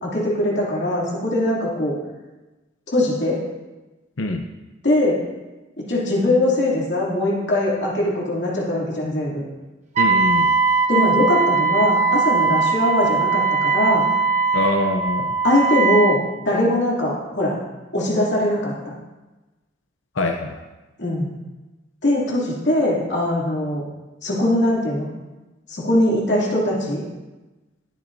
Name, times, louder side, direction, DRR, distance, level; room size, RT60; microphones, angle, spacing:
voice 1, 0.0-2.0 2.9-3.4 4.8-5.2 5.9-9.4 10.9-14.0 15.4-17.5 17.9-18.9 21.0-21.3 22.0-23.8 24.2-25.1 25.7-27.0, left 1 dB, 60° left, -5 dB, 2.9 m, -21 dB
voice 2, 10.0-10.5 14.5-15.3 20.2-20.6, left 2 dB, 80° left, 3 dB, 0.7 m, -24 dB
Wind instrument woodwind instrument, 10.0-16.2, right 5 dB, 35° right, 0.9 m, -20 dB
20.5 x 7.2 x 2.8 m, 1.1 s
head